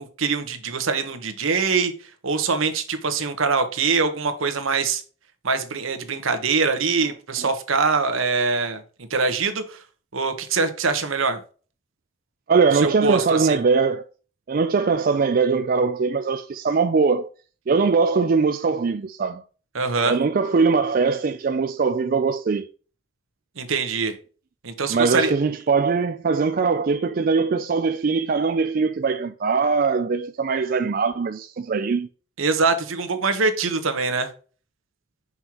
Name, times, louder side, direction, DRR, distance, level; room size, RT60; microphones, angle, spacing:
voice 1, 0.0-1.9 2.2-5.0 5.4-8.8 9.1-9.8 10.1-11.4 12.7-13.6 19.7-20.2 23.6-24.1 24.6-25.3 32.4-34.3, right 4 dB, 75° right, 1.1 m, -23 dB
voice 2, 12.5-14.0 14.5-17.3 17.7-19.4 20.0-22.7 24.9-32.1, right 4 dB, 45° right, 0.4 m, -21 dB
6.1 x 5.5 x 2.9 m
head